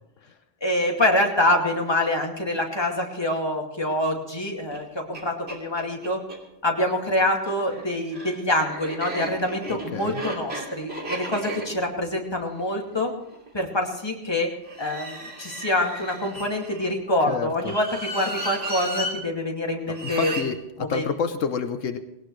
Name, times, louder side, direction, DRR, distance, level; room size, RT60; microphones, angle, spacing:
voice 1, 0.6-6.2 6.6-13.1 13.5-14.5 14.8-20.3 20.8-21.0, left 1 dB, 20° left, 0 dB, 2.4 m, -25 dB
sound 1, 4.7-4.8 5.1-5.2 5.5-6.4 7.3-13.5 14.6-16.9 17.6-19.1 19.9-20.5, right 1 dB, 55° right, 3.1 m, -35 dB
voice 2, 9.7-10.2 17.3-17.7 20.0-22.0, left 6 dB, 80° left, 8 dB, 1.3 m, -29 dB
19.0 x 18.0 x 3.2 m, 0.91 s
omnidirectional pair, 1.3 m